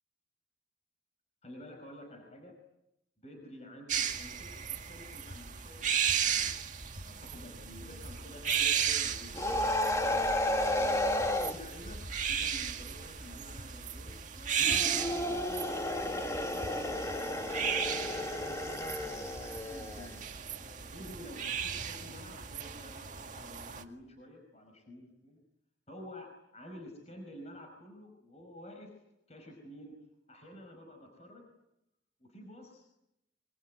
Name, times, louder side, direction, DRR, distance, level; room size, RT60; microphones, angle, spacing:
voice 1, 1.4-2.6 3.2-6.6 7.0-10.2 10.7-12.0 12.3-15.5 16.0-17.0 17.9-18.0 18.3-20.2 20.9-25.4 25.9-28.9 29.3-29.9 30.3-31.5 32.2-32.9, equal, 35° left, 3 dB, 5.3 m, -50 dB
sound 1, 3.9-23.8, right 8 dB, 40° right, 2.0 m, -35 dB
sound 2, 9.3-11.6 14.6-20.2, left 1 dB, 15° left, 1.9 m, -32 dB
25.5 x 24.0 x 9.7 m, 0.84 s
head